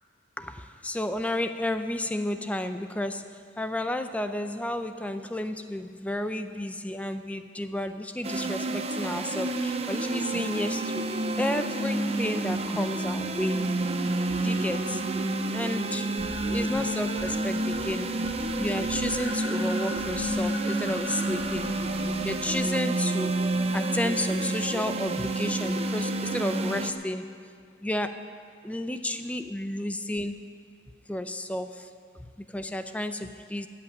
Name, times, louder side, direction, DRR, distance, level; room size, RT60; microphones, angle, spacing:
voice 1, 0.4-11.0 11.4-13.6 14.3-15.0 15.5-16.1 16.5-18.1 18.6-21.7 22.2-23.3 23.7-27.2 27.8-28.2 28.6-30.4 31.1-31.9 32.2-33.7, left 1 dB, 5° left, 9 dB, 0.4 m, -32 dB
sound 1, 8.2-26.9, right 2 dB, 35° right, 0.6 m, -29 dB
sound 2, 16.2-17.4 17.7-18.0 18.2-23.0, left 2 dB, 65° left, 2.2 m, -41 dB
14.0 x 5.9 x 9.8 m, 2.2 s
head